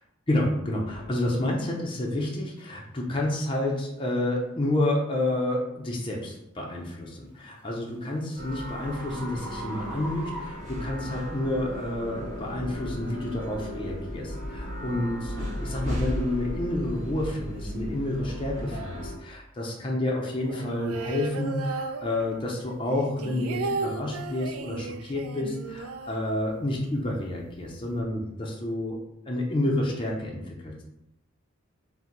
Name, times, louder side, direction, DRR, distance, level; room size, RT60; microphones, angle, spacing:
voice 1, 0.3-29.0 29.3-30.8, left 1 dB, 25° left, -1 dB, 0.6 m, -29 dB
sound 1, 2.6-2.7 3.2-3.4 4.0-4.3 6.9-11.4, right 1 dB, 5° right, 1.0 m, -43 dB
sound 2, 8.4-19.2, equal, 35° right, 1.1 m, -35 dB
sound 3, 20.4-22.6 22.9-26.9 27.1-27.2 27.5-28.0, right 4 dB, 85° right, 0.4 m, -35 dB
4.4 x 2.2 x 3.8 m, 0.83 s
head